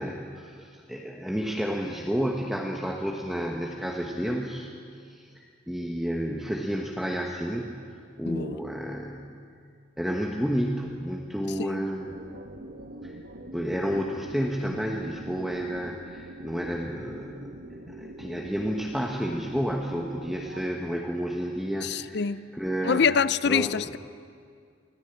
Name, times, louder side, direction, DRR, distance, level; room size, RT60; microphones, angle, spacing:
voice 1, 0.0-4.7 5.1-5.3 5.7-9.3 10.0-12.1 13.0-13.2 13.5-17.5 17.9-22.3 22.5-23.0 23.4-23.7, equal, ahead, 1.2 m, -31 dB
voice 2, 8.3-8.6 11.6-11.9 21.8-22.5 22.8-24.0, left 6 dB, 60° left, 0.5 m, -25 dB
sound 1, 12.0-20.7, right 1 dB, 65° right, 1.4 m, -43 dB
24.0 x 15.5 x 8.8 m
head